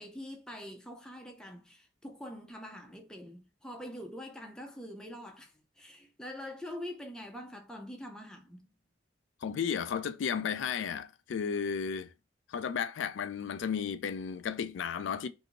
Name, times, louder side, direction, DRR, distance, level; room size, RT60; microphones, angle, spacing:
voice 1, 0.0-8.7, left 1 dB, 5° left, 0.5 m, -44 dB
voice 2, 9.4-12.1 12.5-15.3, left 7 dB, 90° left, 0.4 m, -33 dB
2.6 x 2.6 x 2.8 m
head